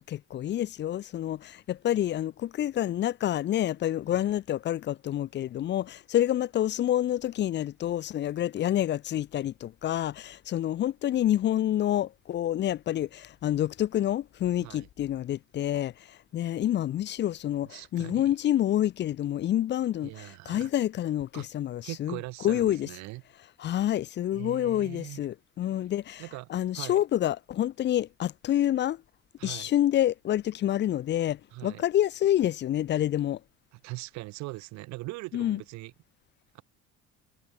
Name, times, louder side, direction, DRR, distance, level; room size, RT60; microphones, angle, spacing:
voice 1, 0.0-22.2 22.4-22.9 23.6-26.2 26.5-29.0 29.4-33.4 35.3-35.6, left 12 dB, 35° left, 1.6 m, -28 dB
voice 2, 17.7-18.2 20.0-20.7 21.3-21.5 21.8-23.2 24.3-25.3 26.2-26.5 26.8-27.0 29.4-29.7 31.5-31.8 33.7-35.9 36.5-36.6, right 22 dB, 65° right, 6.7 m, -41 dB
cardioid pair, 175°, 30 cm